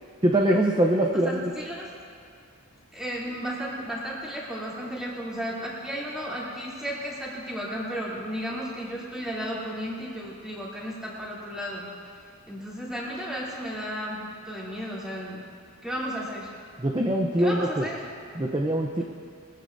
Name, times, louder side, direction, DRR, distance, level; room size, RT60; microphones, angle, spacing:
voice 1, 0.2-1.5 16.8-17.8 18.4-19.0, right 1 dB, 20° right, 1 dB, 0.7 m, -23 dB
voice 2, 1.1-1.9 2.9-11.9 12.5-15.5 15.8-16.5 17.4-18.0, equal, 5° right, -7 dB, 3.1 m, -34 dB
23.0 x 14.5 x 2.7 m, 2.2 s
head